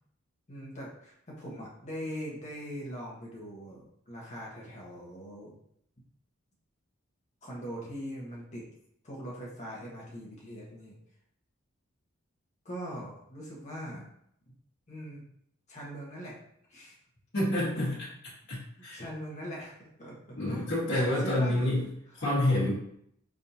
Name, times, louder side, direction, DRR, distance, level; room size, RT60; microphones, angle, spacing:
voice 1, 0.5-5.5 7.4-8.7 9.0-11.0 12.6-14.1 14.9-15.2 15.7-16.4 16.7-16.9 17.7-18.0 18.9-21.6 22.1-22.2, equal, 35° left, -4 dB, 1.3 m, -41 dB
voice 2, 17.3-17.9 18.5-19.0 20.4-21.8 22.2-22.7, left 1 dB, 55° left, -9 dB, 1.6 m, -27 dB
4.2 x 3.6 x 2.8 m, 0.70 s
head